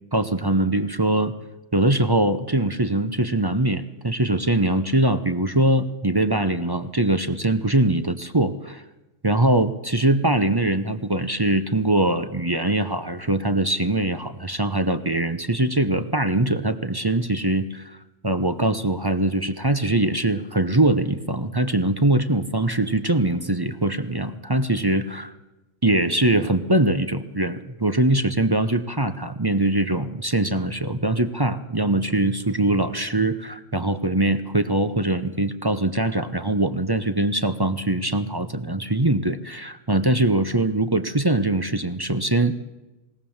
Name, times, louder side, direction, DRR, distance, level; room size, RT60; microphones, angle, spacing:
voice 1, 0.1-1.3 1.7-8.8 9.2-18.0 18.2-25.3 25.8-42.5, right 2 dB, 20° right, 10 dB, 0.7 m, -22 dB
21.0 x 18.0 x 7.2 m, 1.0 s
omnidirectional pair, 1.5 m